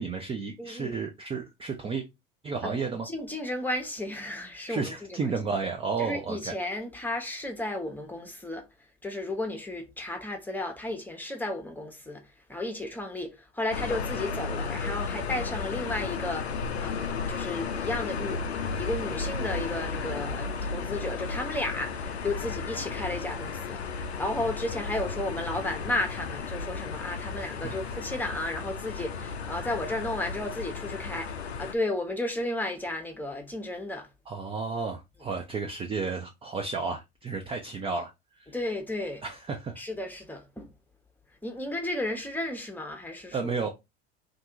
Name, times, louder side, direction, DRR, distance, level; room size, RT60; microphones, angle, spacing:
voice 1, 0.0-2.0 2.4-3.1 4.7-6.5 27.4-28.0 34.3-38.1 38.4-38.5 39.2-39.8 43.3-43.7, right 4 dB, 20° right, 0.5 m, -32 dB
voice 2, 0.6-0.9 2.6-2.8 3.0-5.3 6.0-8.7 9.0-12.2 12.5-16.5 16.8-34.1 38.5-39.2 39.8-40.7 41.4-43.5, left 1 dB, 5° left, 0.9 m, -33 dB
sound 1, 13.7-31.7, left 5 dB, 90° left, 0.5 m, -34 dB
2.7 x 2.5 x 3.5 m
hypercardioid pair, 75°, 31 cm